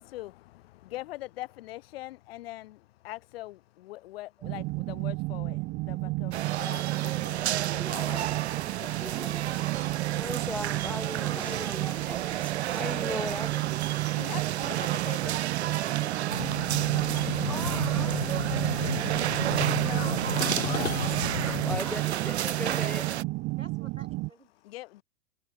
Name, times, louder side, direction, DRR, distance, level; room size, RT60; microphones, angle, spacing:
voice 1, 0.0-8.2 8.8-9.1 14.1-15.4 18.7-19.0 19.8-21.2 24.6-25.0, left 17 dB, 50° left, 4.8 m, -42 dB
sound 1, 4.4-24.3, right 22 dB, 30° right, 1.9 m, -31 dB
sound 2, 6.3-23.2, right 12 dB, 55° right, 1.4 m, -33 dB
voice 2, 7.8-8.5 8.9-13.7 17.0-18.3 19.1-19.6 21.4-23.1, left 1 dB, 5° left, 3.1 m, -39 dB
voice 3, 15.6-16.1 19.9-20.8 22.7-23.0 23.6-24.5, right 2 dB, 90° right, 3.5 m, -43 dB
sound 3, 16.3-21.8, left 4 dB, 80° left, 2.0 m, -33 dB
figure-of-eight pair, 100°, 38 cm